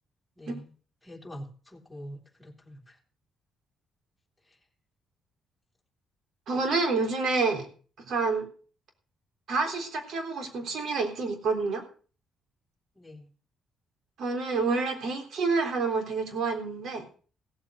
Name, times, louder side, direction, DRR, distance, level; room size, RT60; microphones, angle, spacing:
voice 1, 0.4-0.7 1.0-3.0 4.5-4.6 12.9-13.3, equal, ahead, -1 dB, 3.3 m, -45 dB
voice 2, 6.5-7.7 8.1-8.5 9.5-11.8 14.2-17.0, right 4 dB, 70° right, 5 dB, 3.7 m, -28 dB
16.5 x 7.5 x 6.5 m, 0.40 s
cardioid pair, 90°, 0 cm